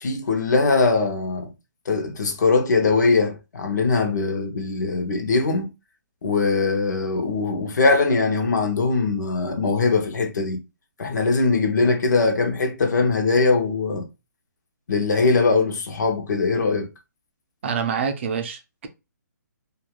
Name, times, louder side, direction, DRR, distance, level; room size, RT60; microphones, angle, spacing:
voice 1, 0.0-1.5 1.9-5.7 6.2-10.6 11.0-14.1 14.9-16.9, left 3 dB, 70° left, 0.7 m, -21 dB
voice 2, 17.6-18.9, right 6 dB, 40° right, 0.4 m, -26 dB
2.4 x 2.2 x 3.0 m
hypercardioid pair, 165°, 10 cm